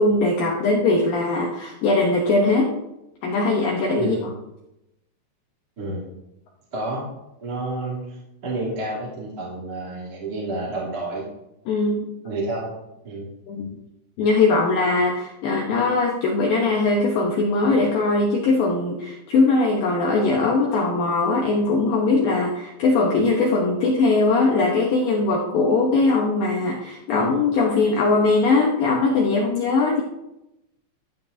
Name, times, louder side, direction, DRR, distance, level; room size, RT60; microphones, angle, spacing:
voice 1, 0.0-2.7 3.2-4.2 11.7-12.1 13.5-13.7 14.2-30.0, left 3 dB, 70° left, -1 dB, 2.2 m, -20 dB
voice 2, 4.0-4.4 5.8-6.1 6.7-7.0 7.4-11.3 12.2-12.7 13.0-13.3, right 2 dB, 25° right, -7 dB, 2.6 m, -30 dB
14.0 x 8.8 x 2.7 m, 0.90 s
omnidirectional pair, 5.2 m